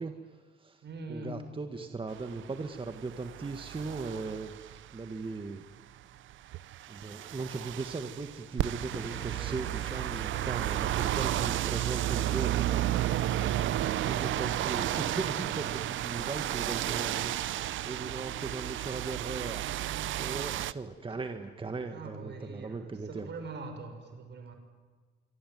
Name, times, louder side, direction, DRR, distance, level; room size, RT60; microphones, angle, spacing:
voice 1, 0.0-0.8 1.1-5.6 6.9-12.8 14.0-19.7 20.2-23.3, right 3 dB, 25° right, 7 dB, 1.8 m, -38 dB
voice 2, 0.8-2.6 21.6-24.6, right 3 dB, 60° right, 7 dB, 6.2 m, -44 dB
sound 1, 2.1-5.0 6.3-20.7, right 14 dB, 75° right, 0.8 m, -32 dB
sound 2, 8.9-15.7, left 1 dB, 10° left, 3.7 m, -47 dB
26.0 x 24.0 x 9.5 m, 1.4 s
cardioid pair, 90°, 20 cm